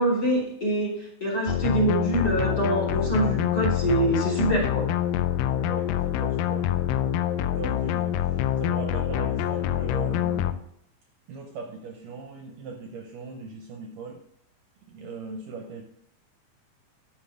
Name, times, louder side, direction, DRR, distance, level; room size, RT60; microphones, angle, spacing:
voice 1, 0.0-4.8, right 2 dB, 25° left, -3 dB, 3.2 m, -25 dB
sound 1, 1.5-10.5, left 11 dB, 85° left, 1.9 m, -26 dB
voice 2, 5.5-6.7 7.5-10.5 11.3-14.3 14.8-15.8, right 4 dB, 70° right, 3 dB, 2.2 m, -39 dB
10.5 x 7.3 x 3.5 m, 0.78 s
omnidirectional pair, 4.4 m